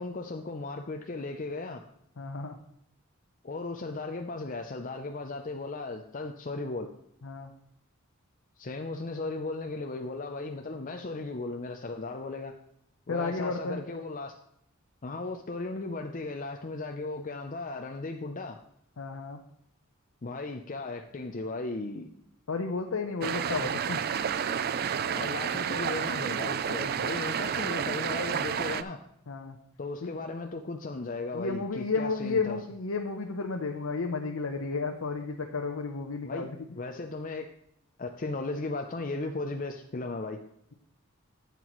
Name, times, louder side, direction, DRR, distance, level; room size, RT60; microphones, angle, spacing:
voice 1, 0.0-1.8 3.4-6.9 8.6-12.5 13.1-14.3 15.0-18.6 20.2-22.1 25.1-29.0 29.8-32.6 36.2-36.5 36.8-37.5 38.0-40.4, left 3 dB, 40° left, 3 dB, 0.5 m, -36 dB
voice 2, 2.2-2.6 7.2-7.5 13.1-13.8 19.0-19.4 22.5-24.0 29.3-29.6 30.0-30.1 31.3-36.6, left 4 dB, 80° left, 2 dB, 0.8 m, -32 dB
sound 1, 23.2-28.8, right 7 dB, 45° right, 0.4 m, -30 dB
11.0 x 8.2 x 3.1 m, 0.75 s
head